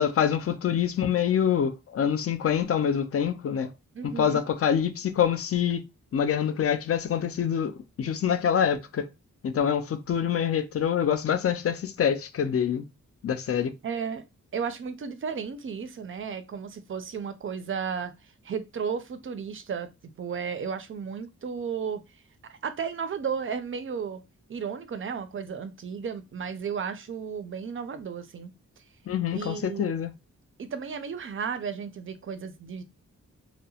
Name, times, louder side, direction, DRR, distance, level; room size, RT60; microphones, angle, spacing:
voice 1, 0.0-3.7 4.0-5.8 6.1-7.7 8.0-9.1 9.4-12.8 13.2-13.7 29.1-30.1, left 8 dB, 50° left, 0.4 m, -25 dB
voice 2, 3.9-4.4 13.8-14.2 14.5-18.1 18.4-19.9 20.2-22.0 22.5-24.2 24.5-28.5 29.3-29.9 30.6-32.8, right 6 dB, 45° right, 0.4 m, -34 dB
2.7 x 2.0 x 2.7 m
wide cardioid pair, 120°, 30 cm